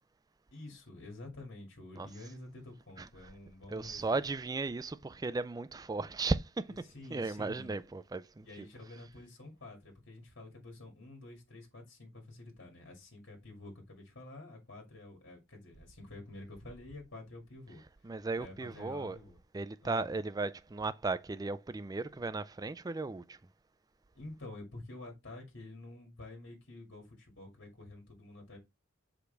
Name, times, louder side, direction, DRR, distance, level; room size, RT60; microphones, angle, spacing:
voice 1, 0.5-4.2 6.7-7.8 8.4-17.8 18.4-19.4 19.8-20.1 24.1-28.6, left 2 dB, 60° left, 2.3 m, -49 dB
voice 2, 3.7-6.7 7.1-8.5 18.0-19.2 19.5-23.4, right 3 dB, 20° right, 0.3 m, -35 dB
6.4 x 5.0 x 3.3 m
head